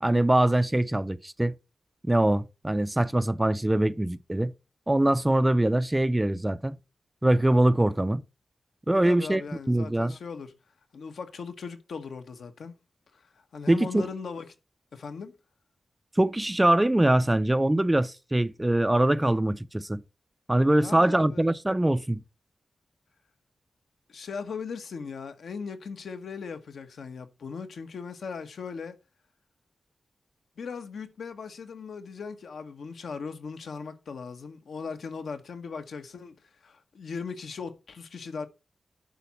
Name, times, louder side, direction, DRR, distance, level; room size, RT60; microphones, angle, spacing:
voice 1, 0.0-1.5 2.0-4.5 4.9-6.8 7.2-8.2 8.9-9.4 9.7-10.1 13.7-14.1 16.2-20.0 20.5-22.2, right 1 dB, 10° right, 0.4 m, -23 dB
voice 2, 9.0-10.5 10.9-12.8 13.1-14.5 14.9-15.3 20.7-21.5 24.1-28.9 30.6-38.5, left 5 dB, 75° left, 1.4 m, -38 dB
11.0 x 4.2 x 5.8 m
wide cardioid pair, 170°, 0 cm